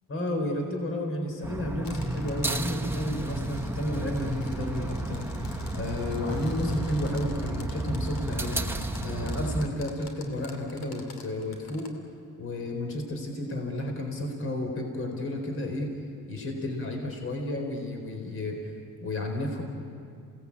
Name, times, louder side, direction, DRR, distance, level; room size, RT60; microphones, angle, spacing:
voice 1, 0.1-8.6 9.0-11.9 12.4-15.9 16.3-18.6 19.0-19.6, left 1 dB, 40° left, 2 dB, 4.2 m, -32 dB
sound 1, 1.4-9.7, right 1 dB, 5° right, 1.4 m, -32 dB
sound 2, 1.8-11.9, left 4 dB, 80° left, 2.9 m, -49 dB
28.5 x 18.0 x 8.5 m, 2.4 s
cardioid pair, 95°, 34 cm